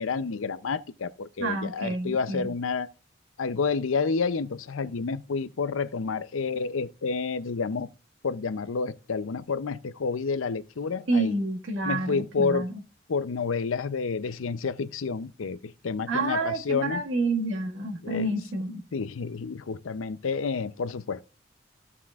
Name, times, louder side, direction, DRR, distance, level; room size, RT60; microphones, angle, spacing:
voice 1, 0.0-2.9 3.4-7.9 8.2-11.4 11.8-12.7 13.1-17.0 18.0-18.3 18.9-21.3, left 5 dB, 85° left, 0.6 m, -29 dB
voice 2, 1.4-2.5 11.1-12.7 16.1-18.8, right 2 dB, 80° right, 1.8 m, -28 dB
15.0 x 5.9 x 2.4 m
head